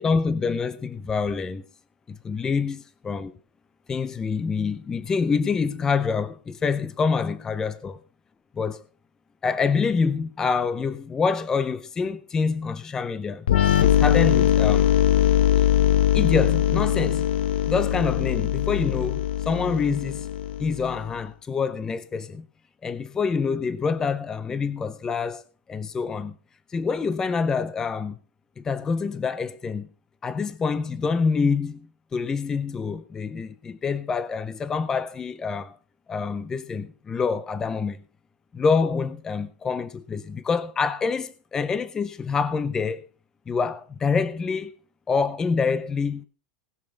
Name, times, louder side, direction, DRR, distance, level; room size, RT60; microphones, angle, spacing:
voice 1, 0.0-1.6 2.1-3.3 3.9-8.0 8.5-8.8 9.4-13.5 13.8-14.9 15.5-15.6 16.1-17.3 17.6-20.3 20.6-22.5 22.8-25.4 25.7-26.4 26.7-28.2 28.6-29.9 30.2-35.8 36.1-38.0 38.5-43.1 43.5-44.7 45.1-46.2, left 5 dB, 10° left, 0.6 m, -26 dB
sound 1, 13.5-21.1, left 11 dB, 85° left, 1.1 m, -21 dB
19.5 x 6.8 x 5.1 m
supercardioid pair, 175°, 5 cm